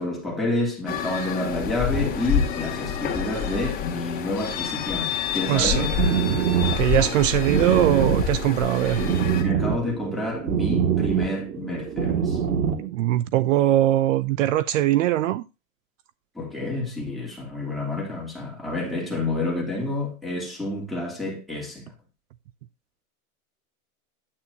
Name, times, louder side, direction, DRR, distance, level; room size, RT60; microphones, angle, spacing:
voice 1, 0.0-5.9 9.4-12.4 16.3-21.9, left 2 dB, ahead, 2.9 m, -29 dB
sound 1, 0.9-9.4, left 7 dB, 20° left, 2.3 m, -28 dB
voice 2, 5.5-6.4 6.8-9.0 12.8-15.4, right 13 dB, 60° right, 0.7 m, -22 dB
sound 2, 5.6-12.9, right 8 dB, 90° right, 2.3 m, -25 dB
9.9 x 8.7 x 2.7 m
supercardioid pair, 155°, 43 cm